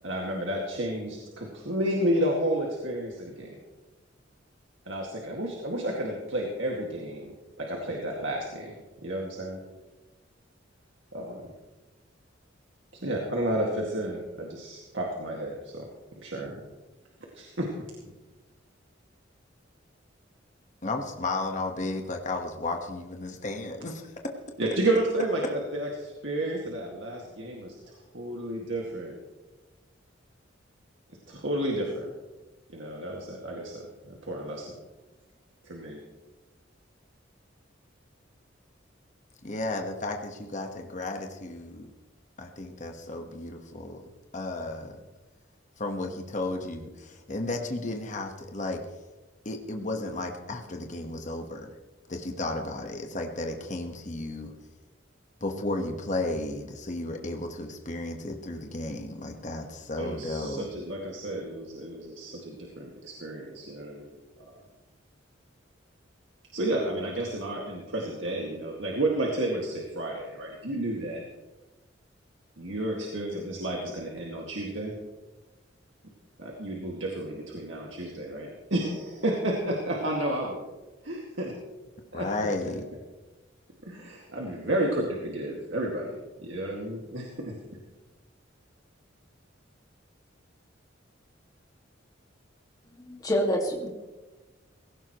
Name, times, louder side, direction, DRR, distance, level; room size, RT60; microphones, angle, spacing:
voice 1, 0.0-3.6 4.9-8.7 9.0-9.6 11.1-11.4 13.0-15.9 16.2-16.5 17.4-17.7 24.6-29.1 31.3-32.1 32.7-34.8 35.6-36.0 60.0-64.1 64.4-64.5 66.5-71.2 72.6-74.9 76.4-80.7 81.0-81.5 82.1-82.3 83.8-87.6, right 1 dB, 75° right, -1 dB, 2.1 m, -31 dB
voice 2, 20.8-24.0 39.4-41.9 42.4-44.0 44.3-45.0 45.8-48.8 49.4-51.7 52.1-54.5 55.4-60.7 82.1-82.8, left 2 dB, 40° left, 3 dB, 1.4 m, -33 dB
voice 3, 93.0-93.9, equal, 20° left, 0 dB, 2.0 m, -27 dB
18.5 x 16.5 x 3.1 m, 1.2 s
head